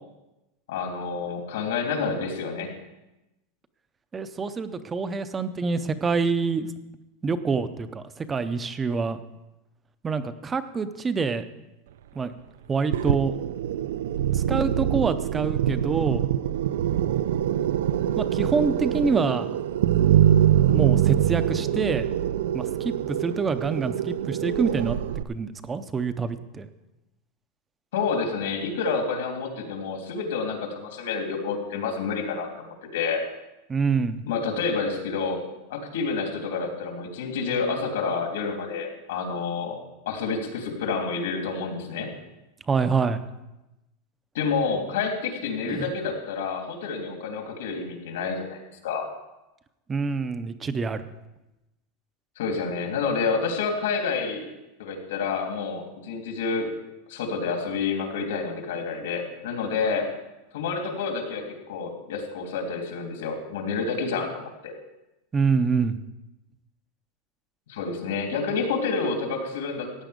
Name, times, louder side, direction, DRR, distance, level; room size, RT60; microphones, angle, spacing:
voice 1, 0.7-2.7 27.9-33.2 34.2-35.4 35.7-39.8 40.0-42.1 44.3-49.1 52.4-54.5 54.8-56.6 57.1-60.1 60.5-64.7 67.7-70.0, left 5 dB, 80° left, 2 dB, 3.1 m, -29 dB
voice 2, 4.1-6.7 7.2-9.2 10.0-11.4 12.2-12.3 12.7-13.3 14.3-16.2 18.2-19.5 20.7-22.1 22.5-25.0 25.3-26.7 33.7-34.2 42.7-43.2 45.7-45.9 49.9-51.1 65.3-66.0, right 5 dB, 10° right, 12 dB, 0.5 m, -26 dB
sound 1, 12.9-25.2, right 10 dB, 85° right, 0.5 m, -24 dB
15.5 x 9.4 x 5.1 m, 0.97 s
supercardioid pair, 180°, 0 cm